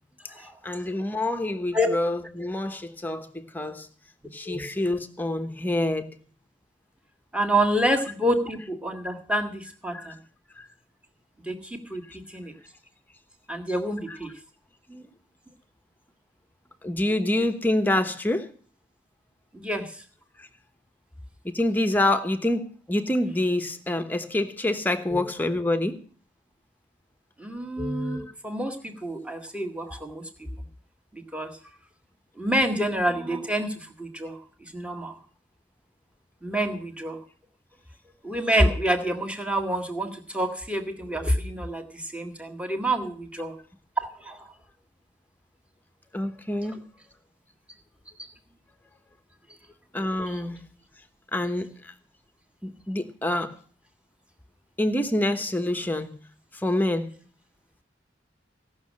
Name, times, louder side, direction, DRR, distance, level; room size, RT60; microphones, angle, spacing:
voice 1, 0.6-3.9 4.3-6.1 7.9-8.0 9.9-10.1 10.6-10.7 12.1-12.2 14.1-14.2 14.9-15.1 16.8-18.5 20.4-20.5 21.4-26.0 28.1-28.2 46.1-46.8 49.9-50.6 51.3-51.9 52.6-53.5 54.8-56.1 56.5-57.1, left 1 dB, 10° left, 1.1 m, -27 dB
voice 2, 7.3-10.1 11.5-12.0 12.3-12.5 13.5-14.3 19.5-19.9 25.1-25.2 27.4-30.2 31.3-31.5 32.4-33.7 34.0-34.4 34.7-35.1 36.4-37.2 38.2-43.5 44.2-44.4, right 1 dB, 5° right, 1.7 m, -27 dB
16.5 x 6.5 x 8.5 m
head